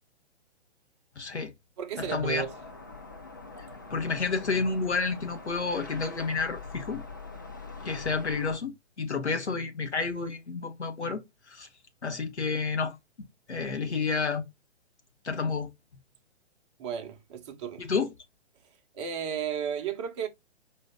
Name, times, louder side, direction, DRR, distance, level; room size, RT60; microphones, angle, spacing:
voice 1, 1.2-1.5 2.0-2.4 3.9-7.0 7.8-11.7 12.0-13.0 13.5-14.4 15.2-15.7 17.8-18.1, left 4 dB, 70° left, 1.3 m, -30 dB
voice 2, 1.8-2.5 16.8-17.9 18.9-20.3, right 8 dB, 25° right, 0.8 m, -33 dB
sound 1, 2.4-8.6, left 3 dB, 20° left, 0.3 m, -44 dB
4.9 x 2.8 x 3.5 m
figure-of-eight pair, 125°, 34 cm